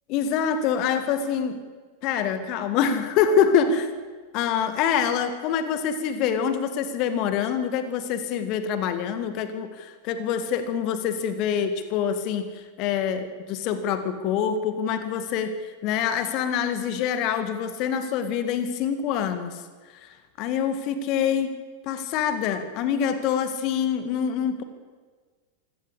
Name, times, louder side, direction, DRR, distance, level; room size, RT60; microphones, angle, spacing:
voice 1, 0.1-1.6 2.0-3.9 4.3-19.6 19.9-21.5 21.8-24.6, left 7 dB, 40° left, 10 dB, 2.0 m, -25 dB
26.5 x 17.0 x 8.3 m, 1.4 s
figure-of-eight pair, 90°, 0 cm